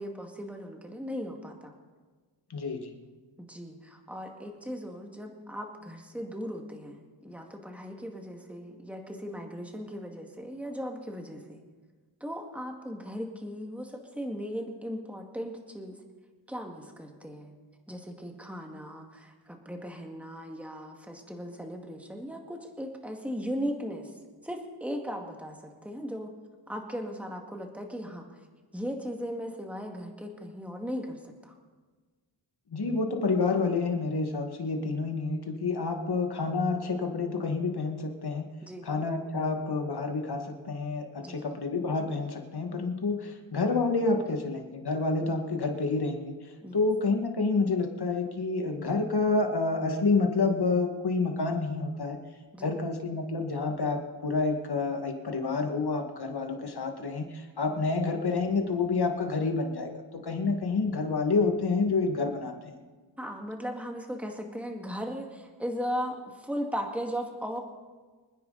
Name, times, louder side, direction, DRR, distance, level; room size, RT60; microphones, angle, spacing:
voice 1, 0.0-1.7 3.4-11.6 12.2-16.0 16.5-17.5 17.9-24.1 24.4-26.3 26.7-28.3 28.7-31.5 38.6-38.9 41.2-41.4 43.2-43.4 46.6-46.8 52.5-52.8 63.2-67.6, equal, 5° right, 2 dB, 2.2 m, -37 dB
voice 2, 2.5-2.9 32.7-38.5 38.9-46.4 46.7-52.2 52.6-62.8, left 3 dB, 55° left, 4 dB, 2.2 m, -28 dB
26.0 x 10.0 x 4.2 m, 1.4 s
cardioid pair, 70°, 47 cm